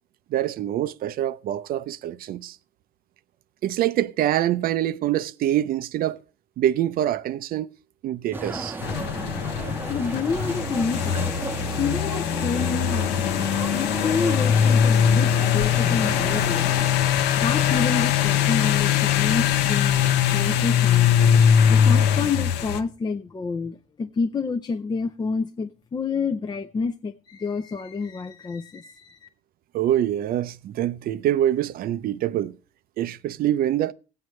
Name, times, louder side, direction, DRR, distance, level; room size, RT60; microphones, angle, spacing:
voice 1, 0.3-2.6 3.6-6.2 6.6-7.7 8.0-8.8 29.7-32.5 33.0-33.9, right 12 dB, 60° right, 0.5 m, -25 dB
sound 1, 8.3-16.9, right 2 dB, 10° right, 0.7 m, -34 dB
sound 2, 8.8-22.8, left 9 dB, 85° left, 0.8 m, -21 dB
voice 2, 9.9-11.3 11.8-13.5 13.7-21.1 21.7-29.3, left 5 dB, 25° left, 0.5 m, -29 dB
17.5 x 7.8 x 3.1 m
cardioid pair, 110°, 17 cm